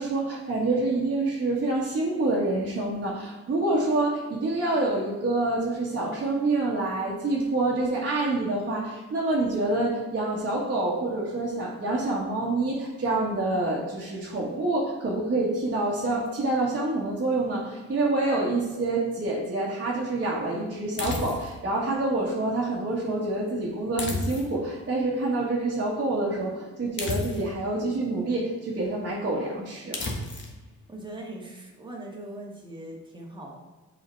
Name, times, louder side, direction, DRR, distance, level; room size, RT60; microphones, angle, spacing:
voice 1, 0.0-30.0, right 2 dB, 40° right, -6 dB, 1.6 m, -27 dB
sound 1, 21.0-21.7 24.0-24.7 27.0-27.7 29.9-30.6, left 2 dB, 40° left, 1.4 m, -32 dB
voice 2, 30.9-33.6, right 1 dB, 15° right, -2 dB, 1.8 m, -40 dB
5.7 x 4.9 x 4.6 m, 1.2 s
cardioid pair, 90°, 30 cm